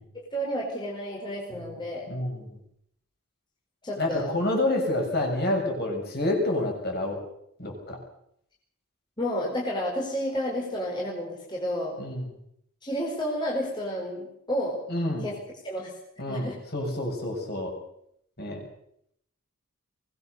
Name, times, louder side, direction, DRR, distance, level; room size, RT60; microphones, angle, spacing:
voice 1, 0.1-2.0 3.8-4.4 9.2-12.0 12.8-14.8 15.2-15.4 15.6-15.9 16.3-16.6, equal, 20° left, -3 dB, 4.8 m, -31 dB
voice 2, 2.1-2.6 4.0-7.2 7.6-8.0 12.0-12.3 14.9-15.3 16.2-17.7 18.4-18.6, left 1 dB, 45° left, 1 dB, 7.0 m, -28 dB
23.0 x 19.5 x 6.8 m, 0.72 s
head